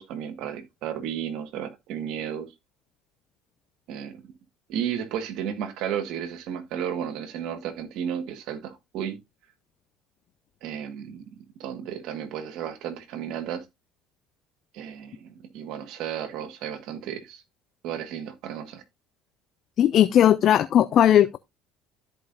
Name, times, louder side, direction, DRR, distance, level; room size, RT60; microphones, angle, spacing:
voice 1, 0.0-2.5 3.9-4.2 4.7-9.2 10.6-11.2 11.6-13.6 14.7-17.4 17.8-18.8, right 9 dB, 65° right, 1.7 m, -33 dB
voice 2, 19.8-21.4, left 11 dB, 55° left, 0.5 m, -18 dB
13.5 x 4.9 x 2.6 m
supercardioid pair, 80°, 0 cm